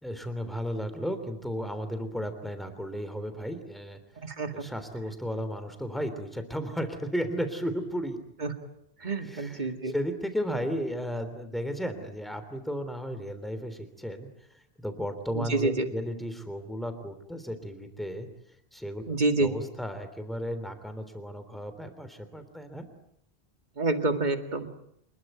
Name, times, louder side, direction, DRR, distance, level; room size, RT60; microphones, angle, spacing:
voice 1, 0.0-4.0 4.5-8.2 9.2-14.3 14.8-18.3 18.7-19.0 19.3-22.8, equal, ahead, 8 dB, 3.4 m, -34 dB
voice 2, 4.2-4.6 8.4-8.5 9.0-9.9 15.3-15.9 19.1-19.5 23.8-24.7, right 2 dB, 45° right, 7 dB, 2.3 m, -27 dB
27.0 x 21.0 x 9.2 m, 0.72 s
omnidirectional pair, 1.1 m